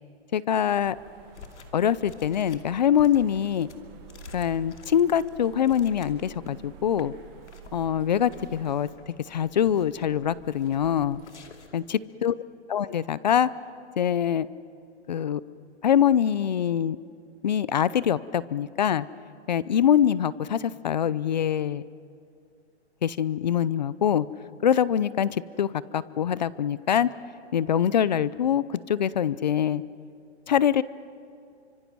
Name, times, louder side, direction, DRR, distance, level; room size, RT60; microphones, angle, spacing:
voice 1, 0.3-1.0 1.7-3.7 4.3-7.1 7.7-8.9 9.3-11.2 11.7-11.8 12.2-12.3 12.7-13.5 14.0-14.5 15.1-15.4 15.8-17.0 17.4-19.1 19.5-21.8 23.0-24.3 24.6-27.1 27.5-29.8 30.5-30.8, left 9 dB, 40° left, 19 dB, 0.6 m, -24 dB
sound 1, 0.8-11.3, right 9 dB, 20° right, 1.2 m, -50 dB
sound 2, 1.3-6.6 6.9-7.1 7.4-7.8 8.3-9.0 9.4-10.0 10.5-10.9 11.2-11.8, left 5 dB, 85° left, 2.7 m, -48 dB
30.0 x 25.0 x 6.2 m, 2.4 s
hypercardioid pair, 170°, 34 cm